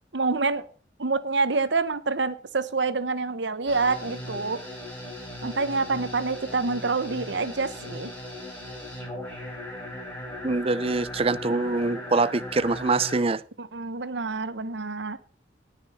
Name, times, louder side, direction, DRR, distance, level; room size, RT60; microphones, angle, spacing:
voice 1, 0.1-0.7 1.0-4.6 5.4-8.1 13.6-15.2, right 4 dB, 80° right, 1.0 m, -27 dB
sound 1, 3.7-13.2, left 1 dB, 10° left, 5.3 m, -38 dB
voice 2, 10.4-13.4, right 3 dB, 35° right, 0.6 m, -24 dB
18.0 x 6.2 x 5.6 m
head